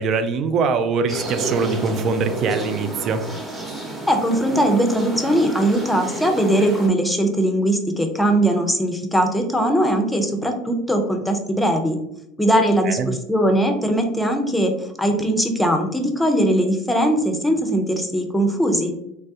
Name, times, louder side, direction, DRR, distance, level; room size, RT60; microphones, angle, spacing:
voice 1, 0.0-3.2 12.8-13.1, right 4 dB, 45° right, 9 dB, 0.4 m, -22 dB
sound 1, 1.1-6.9, right 2 dB, 15° right, 0.9 m, -30 dB
voice 2, 4.1-12.0 12.4-18.9, right 1 dB, 5° left, 4 dB, 0.6 m, -20 dB
3.2 x 2.2 x 2.7 m, 0.79 s
hypercardioid pair, 75°, 0 cm